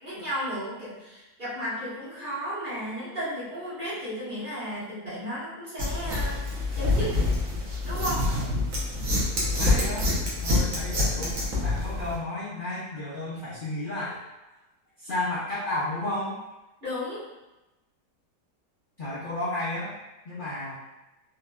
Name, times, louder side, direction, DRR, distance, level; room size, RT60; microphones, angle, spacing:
voice 1, 0.0-6.4 6.7-7.1 7.8-8.3 16.8-17.2, equal, 30° right, -12 dB, 1.5 m, -34 dB
sound 1, 5.8-12.2, left 2 dB, 60° right, 1.2 m, -26 dB
voice 2, 8.2-8.6 9.6-10.1 10.4-14.2 15.0-16.3 19.0-19.9 20.2-20.8, left 2 dB, 80° left, -9 dB, 0.4 m, -32 dB
3.8 x 2.7 x 2.3 m, 1.0 s
omnidirectional pair, 1.7 m